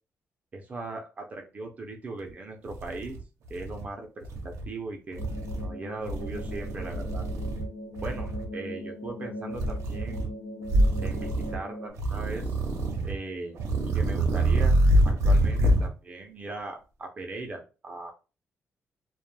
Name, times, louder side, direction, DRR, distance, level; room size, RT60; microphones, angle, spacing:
voice 1, 0.5-3.2 3.5-5.2 5.6-7.3 8.0-10.3 11.0-12.5 13.0-13.6 13.8-14.8 15.0-18.1, right 3 dB, 30° right, 2 dB, 0.5 m, -39 dB
sound 1, 2.3-2.4 2.7-3.8 4.2-4.7 5.1-5.7 6.0-7.7 8.0-8.5 9.5-10.3 10.6-11.6 12.0-13.2 13.5-15.9, right 1 dB, 85° right, 0.5 m, -25 dB
sound 2, 5.2-11.9, left 1 dB, 65° left, 0.5 m, -40 dB
2.1 x 2.0 x 3.1 m, 0.31 s
wide cardioid pair, 160°, 5 cm